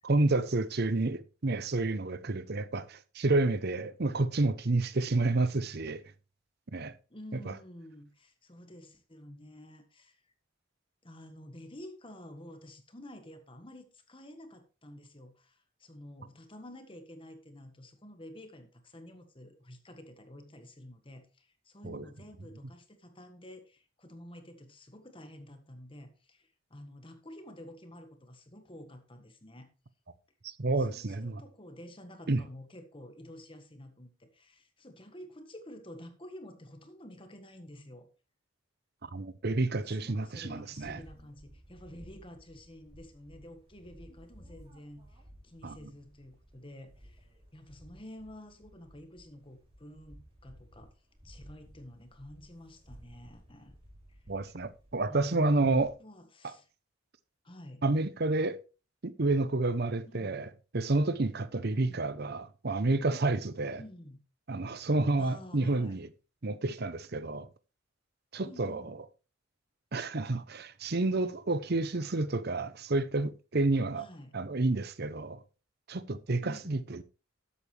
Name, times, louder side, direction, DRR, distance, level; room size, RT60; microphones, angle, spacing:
voice 1, 0.0-6.0 6.7-6.9 21.8-22.0 30.4-31.4 32.3-32.4 39.0-41.0 45.6-45.8 54.3-55.9 57.8-58.6 59.0-63.8 64.5-66.1 66.4-67.5 68.3-68.9 69.9-74.0 74.3-75.4 75.9-77.0, right 2 dB, 50° right, 0.8 m, -30 dB
voice 2, 7.1-10.3 11.0-29.7 30.8-38.1 39.9-50.9 51.2-53.8 54.1-54.2 55.1-56.7 57.4-57.8 60.1-60.4 61.7-62.1 63.8-64.2 65.2-66.0 68.4-69.0 74.0-74.4 76.4-76.8, left 1 dB, 25° left, 1.5 m, -50 dB
sound 1, 40.7-55.9, equal, 25° right, 3.3 m, -56 dB
13.0 x 8.4 x 3.3 m
head